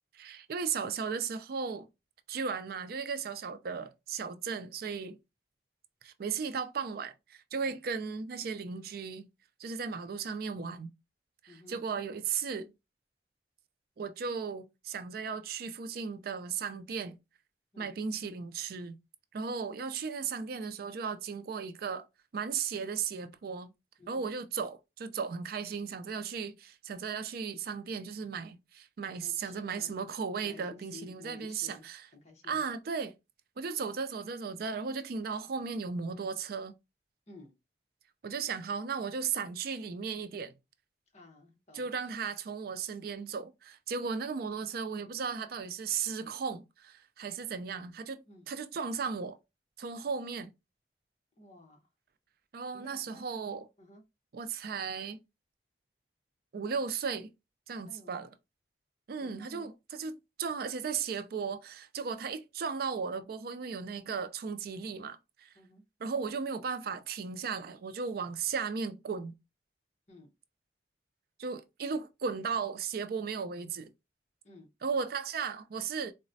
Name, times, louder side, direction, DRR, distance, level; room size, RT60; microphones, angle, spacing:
voice 1, 0.1-1.9 2.3-5.2 6.0-9.3 9.6-10.9 11.4-12.7 14.0-17.2 17.8-19.0 19.3-22.0 22.3-23.7 24.1-32.1 32.5-33.1 33.6-36.8 38.2-40.5 41.7-49.4 49.8-50.5 52.5-53.7 54.3-55.2 56.5-57.3 57.7-58.3 59.1-65.5 66.0-69.3 71.4-73.9 74.8-76.1, right 5 dB, 55° right, 0.4 m, -36 dB
voice 2, 11.5-11.8 17.7-17.9 24.0-24.3 29.2-30.1 30.4-31.9 32.1-32.6 37.3-37.5 41.1-41.9 48.2-48.5 51.4-51.9 52.7-53.3 53.8-54.0 57.9-58.2 59.2-59.7 65.5-65.8 70.1-70.3 74.4-74.7, left 3 dB, 40° left, 0.9 m, -53 dB
3.9 x 2.1 x 2.6 m
head